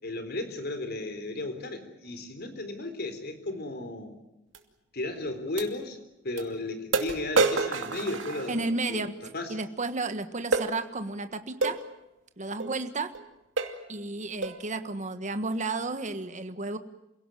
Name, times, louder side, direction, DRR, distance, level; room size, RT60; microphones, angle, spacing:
voice 1, 0.0-4.2 4.9-6.0 6.2-9.6, left 2 dB, 55° left, 8 dB, 3.9 m, -35 dB
sound 1, 4.5-4.6 5.6-5.7 6.4-6.5 6.9-8.9 10.5-10.7 11.6-11.8 12.6-12.8 13.1-13.3 13.6-13.9 14.4-14.7, right 3 dB, 90° right, 2.6 m, -28 dB
voice 2, 8.5-9.1 9.5-11.8 12.4-13.1 13.9-16.8, right 3 dB, 40° right, 9 dB, 1.5 m, -32 dB
28.0 x 17.5 x 9.2 m, 0.92 s
head